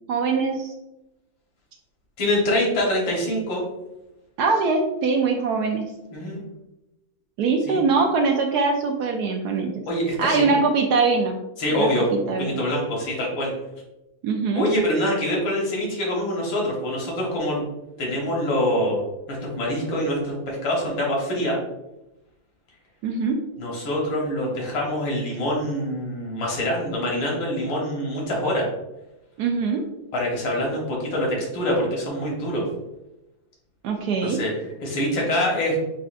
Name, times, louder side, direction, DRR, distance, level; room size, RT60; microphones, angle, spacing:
voice 1, 0.1-0.7 4.4-5.9 7.4-9.8 10.2-11.4 11.8-12.6 14.2-14.7 23.0-23.4 29.4-29.8 33.8-34.4, right 4 dB, 75° right, 3 dB, 0.9 m, -22 dB
voice 2, 2.2-3.6 6.1-6.4 7.7-7.8 9.9-10.5 11.6-13.5 14.5-17.6 18.0-19.0 19.3-21.6 23.6-28.7 30.1-32.7 34.2-34.5 34.8-35.8, left 1 dB, 75° left, -2 dB, 2.0 m, -25 dB
7.5 x 2.5 x 2.4 m, 0.93 s
omnidirectional pair, 2.1 m